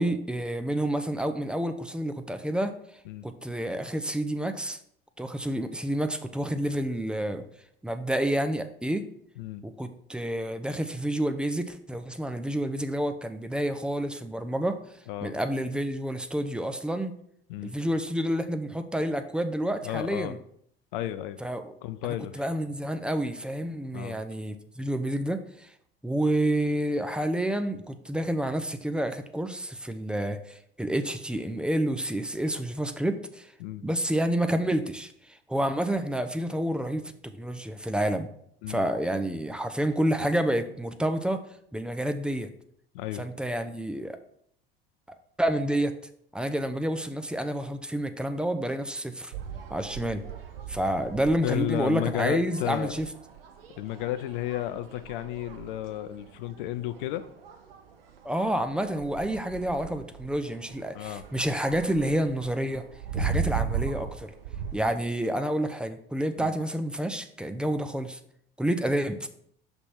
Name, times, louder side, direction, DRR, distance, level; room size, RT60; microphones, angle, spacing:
voice 1, 0.0-2.7 3.2-4.8 5.2-7.5 7.8-9.1 9.6-14.8 15.2-17.2 17.6-20.4 21.4-21.7 22.0-25.7 26.0-33.5 33.8-38.3 38.7-41.4 41.7-42.5 43.1-44.2 45.1-45.9 46.3-49.3 49.7-50.2 50.7-53.1 58.2-62.8 63.1-64.3 64.7-68.2 68.6-69.3, right 1 dB, 5° right, 8 dB, 0.4 m, -29 dB
voice 2, 19.8-20.4 20.9-21.4 21.8-22.4 23.9-24.2 33.6-33.8 38.6-38.8 42.9-43.2 51.4-52.9 53.8-57.2 60.9-61.2 63.3-63.5 66.4-66.5, left 14 dB, 60° left, 12 dB, 0.5 m, -33 dB
sound 1, 49.3-64.8, right 6 dB, 70° right, 0.7 m, -38 dB
5.8 x 3.5 x 5.8 m, 0.69 s
figure-of-eight pair, 65°, 30 cm